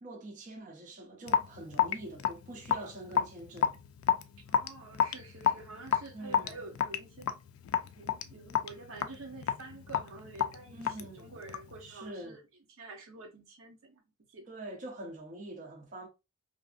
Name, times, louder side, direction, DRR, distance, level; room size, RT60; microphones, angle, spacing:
voice 1, 0.0-3.8 6.1-6.6 10.7-11.3 11.8-12.4 14.5-16.1, right 1 dB, 35° right, 0.5 m, -45 dB
Raindrop / Drip, 1.3-11.8, left 8 dB, 75° left, 0.3 m, -31 dB
voice 2, 4.5-7.3 7.9-12.4 12.8-14.0 14.3-14.4, right 3 dB, 75° right, 0.8 m, -48 dB
2.6 x 2.5 x 2.4 m
head